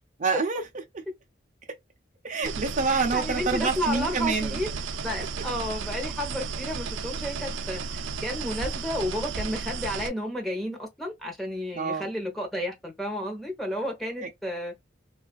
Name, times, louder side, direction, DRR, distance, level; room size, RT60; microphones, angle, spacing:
voice 1, 0.2-0.6 2.2-4.6 11.7-12.0, right 4 dB, 40° right, 0.6 m, -26 dB
sound 1, 2.4-10.1, right 5 dB, 85° right, 0.5 m, -33 dB
voice 2, 2.9-4.7 5.0-14.7, equal, ahead, 1.0 m, -32 dB
3.5 x 2.4 x 2.3 m
head